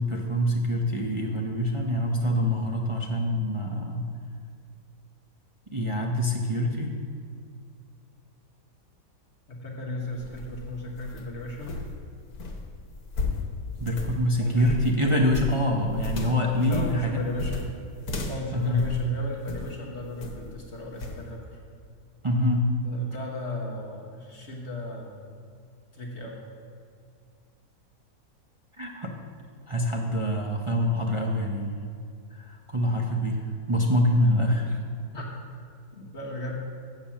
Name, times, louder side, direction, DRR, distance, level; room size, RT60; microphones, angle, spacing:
voice 1, 0.0-4.0 5.7-6.9 13.8-17.2 18.5-18.8 22.2-22.6 28.8-29.1 29.7-32.0 32.3-33.4 33.7-34.8, left 1 dB, 40° right, -1 dB, 0.4 m, -25 dB
voice 2, 9.5-11.7 14.4-14.7 15.0-15.2 16.6-17.6 18.3-21.6 22.8-25.2 25.9-26.4 35.1-35.3 35.9-36.5, left 1 dB, 45° left, -2 dB, 1.4 m, -35 dB
sound 1, 10.0-19.8 20.2-20.6 21.0-21.2, left 3 dB, 65° left, 1.4 m, -35 dB
7.8 x 7.1 x 7.3 m, 2.3 s
omnidirectional pair, 1.7 m